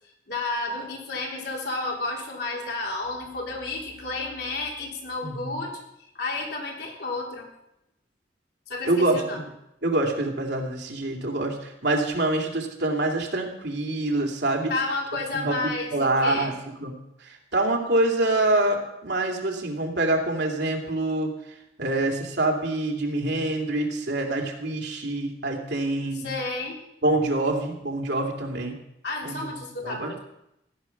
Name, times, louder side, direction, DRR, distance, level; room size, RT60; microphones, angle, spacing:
voice 1, 0.3-5.8 6.2-7.5 8.7-9.4 14.7-16.6 26.1-26.8 29.0-30.2, left 2 dB, 65° left, -1 dB, 3.6 m, -31 dB
voice 2, 5.2-5.5 8.9-9.2 9.8-14.7 15.3-16.5 16.8-16.9 17.2-21.3 21.8-26.3 27.0-28.7 29.2-29.5 29.8-30.2, right 2 dB, 70° right, 1 dB, 2.9 m, -26 dB
16.5 x 11.0 x 6.0 m, 0.83 s
head